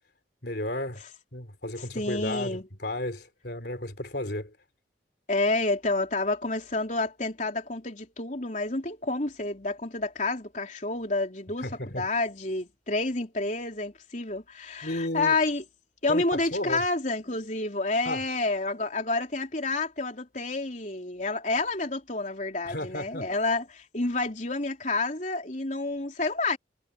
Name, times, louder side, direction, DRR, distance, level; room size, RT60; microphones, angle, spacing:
voice 1, 0.4-1.0 1.3-4.5 11.6-12.1 14.8-15.3 16.1-16.8 18.1-18.2 22.6-23.3, left 1 dB, 60° left, 3.7 m, -33 dB
voice 2, 1.9-2.7 5.3-15.6 16.0-26.6, left 2 dB, 40° left, 4.0 m, -29 dB
head